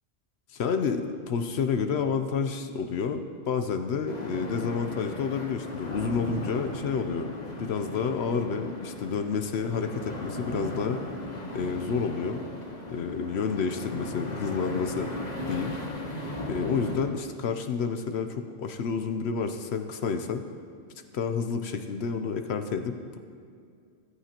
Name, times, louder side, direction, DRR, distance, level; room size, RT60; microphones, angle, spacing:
voice 1, 0.5-7.3 7.6-11.0 11.5-12.4 12.9-15.1 15.4-15.8 16.5-20.4 21.1-23.2, left 5 dB, 70° left, 7 dB, 0.9 m, -29 dB
sound 1, 4.1-17.1, left 1 dB, 40° left, 1.2 m, -37 dB
14.5 x 13.0 x 2.9 m, 2.2 s
omnidirectional pair, 1.2 m